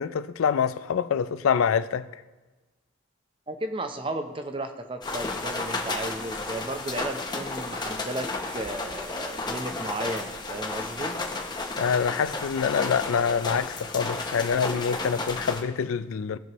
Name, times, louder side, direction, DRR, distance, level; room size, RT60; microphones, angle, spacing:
voice 1, 0.0-2.2 11.8-16.4, left 6 dB, 85° left, 0.4 m, -26 dB
voice 2, 3.5-8.3 8.5-11.2, right 1 dB, 25° right, 0.6 m, -34 dB
sound 1, 5.0-15.6, left 3 dB, 20° left, 0.8 m, -33 dB
18.0 x 6.2 x 3.0 m
head